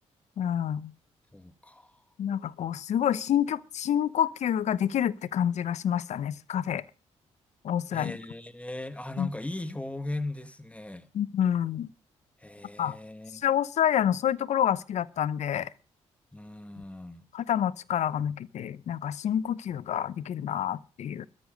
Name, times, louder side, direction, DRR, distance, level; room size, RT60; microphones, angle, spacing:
voice 1, 0.4-0.9 2.2-6.8 7.6-8.1 9.2-9.3 11.1-11.9 12.8-13.0 13.3-15.7 17.3-21.3, left 9 dB, 65° left, 0.8 m, -28 dB
voice 2, 1.3-1.9 7.9-11.1 12.4-13.4 16.3-17.2, left 2 dB, 10° left, 1.6 m, -38 dB
13.5 x 13.0 x 5.2 m
supercardioid pair, 60°, 13 cm